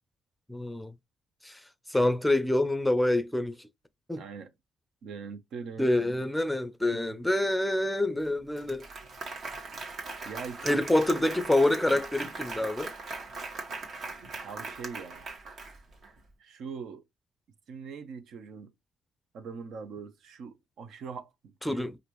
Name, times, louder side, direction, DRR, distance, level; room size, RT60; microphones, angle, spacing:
voice 1, 0.5-0.9 1.4-1.6 1.9-3.7 4.1-4.2 5.8-8.9 10.6-12.9 21.6-22.0, left 1 dB, 5° left, 0.5 m, -26 dB
voice 2, 4.1-4.5 5.0-6.3 9.7-10.0 10.2-10.8 14.4-15.3 16.4-17.0 17.7-18.7 19.3-21.8, right 5 dB, 75° right, 0.8 m, -42 dB
Applause, 8.2-8.3 8.6-16.1, right 3 dB, 55° right, 1.4 m, -40 dB
5.0 x 2.6 x 3.0 m
cardioid pair, 90°, 0 cm